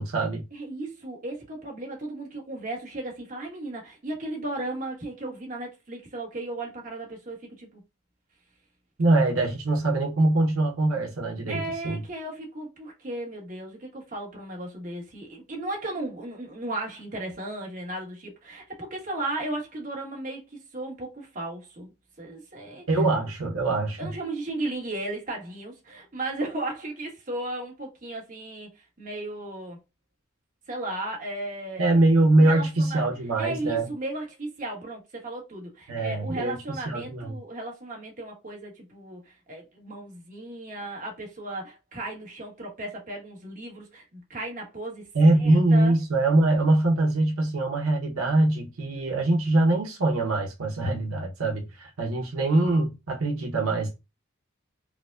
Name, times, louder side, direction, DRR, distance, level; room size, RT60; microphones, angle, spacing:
voice 1, 0.0-0.4 9.0-12.0 22.9-24.0 31.8-33.9 35.9-36.5 36.9-37.4 45.1-53.9, right 2 dB, 85° right, 0.7 m, -23 dB
voice 2, 0.5-7.8 11.5-21.9 22.2-23.0 24.0-29.8 30.7-31.8 32.4-33.1 33.4-45.9, right 2 dB, 40° right, 1.1 m, -35 dB
4.8 x 2.1 x 2.3 m
head